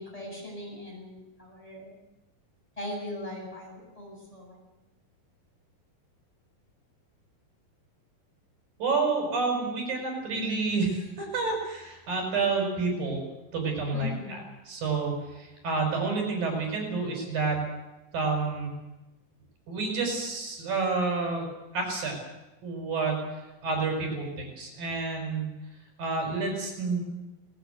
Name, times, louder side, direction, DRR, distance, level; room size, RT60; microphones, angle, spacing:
voice 1, 0.0-1.9 2.8-4.6 13.9-14.4, left 1 dB, 10° left, -3 dB, 8.0 m, -39 dB
voice 2, 8.8-13.2 13.5-17.6 18.1-18.7 19.7-21.4 21.7-22.2 22.6-23.2 23.6-25.6 26.0-27.0, right 4 dB, 70° right, 2 dB, 6.6 m, -29 dB
19.0 x 18.5 x 8.2 m, 1.0 s
omnidirectional pair, 4.2 m